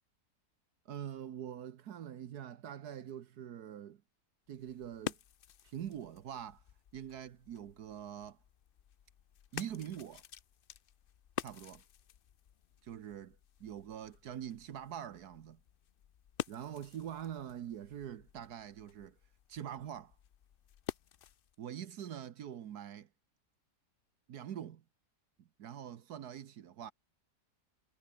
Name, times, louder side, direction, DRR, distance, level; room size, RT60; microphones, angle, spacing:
voice 1, 0.8-4.0 4.5-5.2 5.6-6.6 6.9-8.4 9.5-10.2 11.4-11.8 12.8-15.6 16.5-19.2 19.5-20.1 21.6-23.1 24.3-24.8 25.4-26.9, right 10 dB, 75° right, 1.5 m, -44 dB
sound 1, 4.5-21.6, left 9 dB, 65° left, 0.5 m, -49 dB
omnidirectional pair, 1.7 m